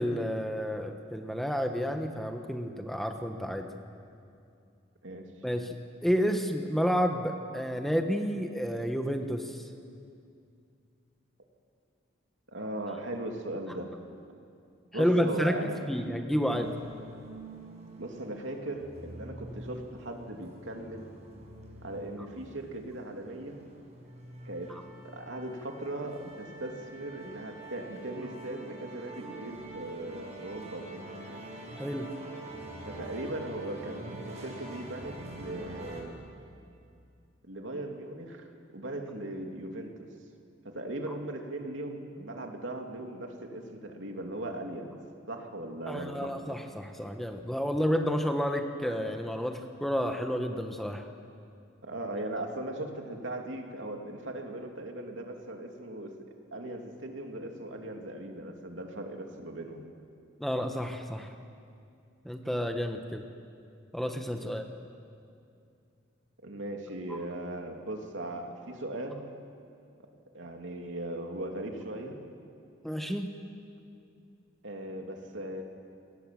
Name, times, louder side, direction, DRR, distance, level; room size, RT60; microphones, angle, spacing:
voice 1, 0.0-3.7 5.4-9.7 14.9-16.7 24.7-24.8 31.7-32.1 45.9-51.1 60.4-61.3 62.2-63.2 63.9-64.6 67.1-67.2 72.8-73.3, equal, ahead, 4 dB, 1.2 m, -30 dB
voice 2, 12.5-14.0 14.9-15.8 18.0-21.1 21.8-23.6 24.4-24.7 25.0-31.0 32.8-36.2 37.5-40.1 40.6-45.0 45.3-46.6 51.8-56.1 56.5-59.9 64.4-64.6 66.4-69.2 70.3-72.2 74.6-75.6, right 1 dB, 80° right, 2 dB, 2.8 m, -38 dB
sound 1, 16.5-36.0, right 2 dB, 35° right, 5.3 m, -45 dB
29.5 x 19.0 x 7.7 m, 2.4 s
head